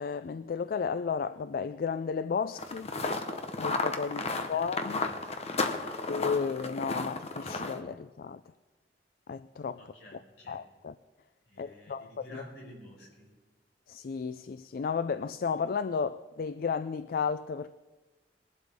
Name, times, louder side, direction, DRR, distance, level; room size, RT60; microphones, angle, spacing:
voice 1, 0.0-2.9 3.6-4.2 4.5-5.0 6.1-8.4 9.3-9.8 10.1-10.2 10.5-10.9 11.6-12.4 13.9-17.7, left 5 dB, 50° left, 0.3 m, -33 dB
sound 1, 2.6-7.8, left 3 dB, 35° left, 0.9 m, -33 dB
voice 2, 4.5-5.5 5.7-6.1 9.8-10.6 11.5-13.3, left 1 dB, 70° left, 4.7 m, -51 dB
21.0 x 11.5 x 3.6 m
head